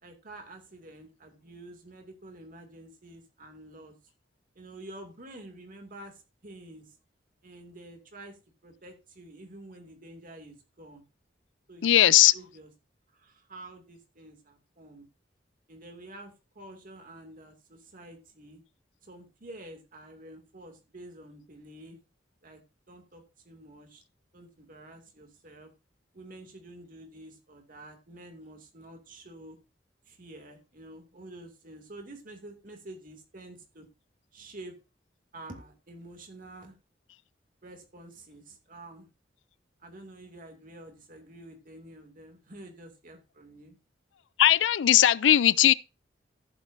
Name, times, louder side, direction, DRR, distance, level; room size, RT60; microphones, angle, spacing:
voice 1, 0.0-3.9 4.6-7.0 7.4-8.4 8.6-11.0 11.7-12.7 13.1-15.1 15.7-18.6 19.0-22.0 22.4-22.6 22.9-24.0 24.3-25.7 26.1-29.6 30.1-33.9 34.3-34.7 35.3-36.8 37.6-39.1 39.8-43.8, right 1 dB, 50° right, 2.4 m, -48 dB
voice 2, 11.8-12.3 44.4-45.7, left 12 dB, 75° left, 0.4 m, -19 dB
14.5 x 7.5 x 2.7 m
head